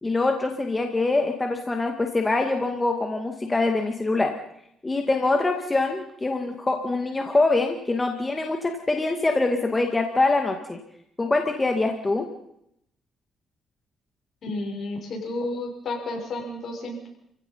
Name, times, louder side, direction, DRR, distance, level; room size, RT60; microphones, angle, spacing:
voice 1, 0.0-4.3 4.8-10.8 11.2-12.3, left 2 dB, 20° left, 4 dB, 2.1 m, -24 dB
voice 2, 14.4-17.1, left 2 dB, 60° left, 1 dB, 7.0 m, -31 dB
29.5 x 16.0 x 5.7 m, 0.77 s
cardioid pair, 90°, 0 cm